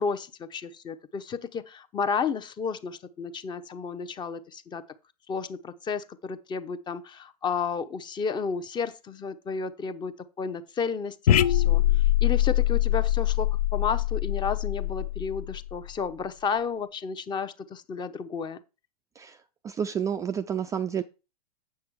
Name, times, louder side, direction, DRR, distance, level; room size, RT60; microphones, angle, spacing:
voice 1, 0.0-4.8 5.3-18.6, left 5 dB, 20° left, 0.8 m, -32 dB
sound 1, 11.3-15.9, left 13 dB, 70° left, 0.5 m, -24 dB
voice 2, 19.6-21.0, right 8 dB, 15° right, 0.4 m, -29 dB
8.3 x 5.9 x 4.6 m
hypercardioid pair, 100°, 20 cm